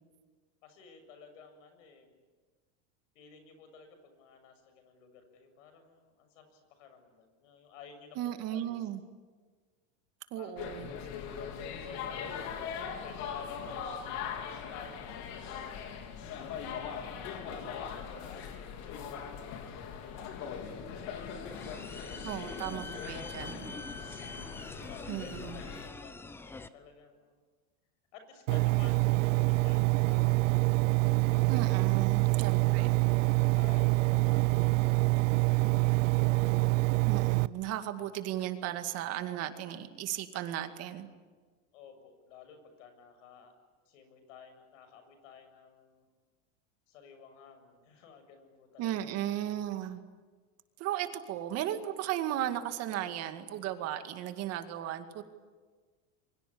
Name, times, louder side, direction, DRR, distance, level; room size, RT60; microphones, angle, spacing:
voice 1, 0.6-2.1 3.2-8.9 10.4-12.4 12.8-15.7 16.5-23.6 24.5-27.4 28.1-32.0 32.8-32.9 33.5-36.1 41.7-43.5 43.8-46.0 46.9-49.0, left 6 dB, 80° left, 8 dB, 7.2 m, -54 dB
voice 2, 8.2-9.0 10.3-10.9 22.2-23.7 25.1-25.7 31.5-33.0 37.1-41.1 48.8-50.0 50.8-55.2, right 12 dB, 40° right, 8 dB, 2.2 m, -36 dB
sound 1, 10.6-25.9, left 7 dB, 45° left, 3.8 m, -40 dB
sound 2, 21.4-26.7, left 3 dB, 5° left, 0.7 m, -45 dB
Engine, 28.5-37.5, right 26 dB, 90° right, 0.7 m, -26 dB
28.0 x 24.0 x 8.7 m, 1.4 s
supercardioid pair, 150°, 37 cm